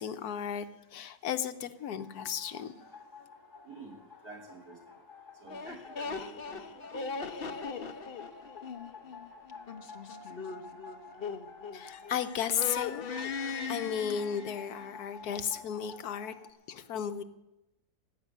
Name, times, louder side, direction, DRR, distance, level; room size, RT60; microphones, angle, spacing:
voice 1, 0.0-2.7 11.7-16.3 16.7-17.2, left 8 dB, 80° left, 10 dB, 1.4 m, -35 dB
sound 1, 1.9-16.5, left 4 dB, 15° left, 1.6 m, -51 dB
voice 2, 3.6-4.8 5.4-7.4, right 3 dB, 75° right, -2 dB, 3.8 m, -49 dB
sound 2, 5.5-12.2 12.5-14.9, left 5 dB, 45° left, 0.9 m, -39 dB
15.5 x 7.1 x 9.4 m, 0.92 s
omnidirectional pair, 1.6 m